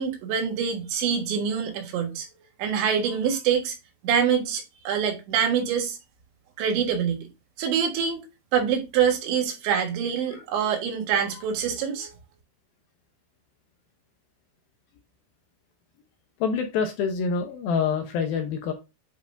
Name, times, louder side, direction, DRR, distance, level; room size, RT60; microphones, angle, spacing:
voice 1, 0.0-2.3 2.6-3.8 4.0-6.0 6.6-7.3 7.6-8.2 8.5-12.1, right 7 dB, 85° right, 3.8 m, -25 dB
voice 2, 16.4-18.7, left 5 dB, 75° left, 2.3 m, -26 dB
9.2 x 5.3 x 2.6 m
omnidirectional pair, 5.0 m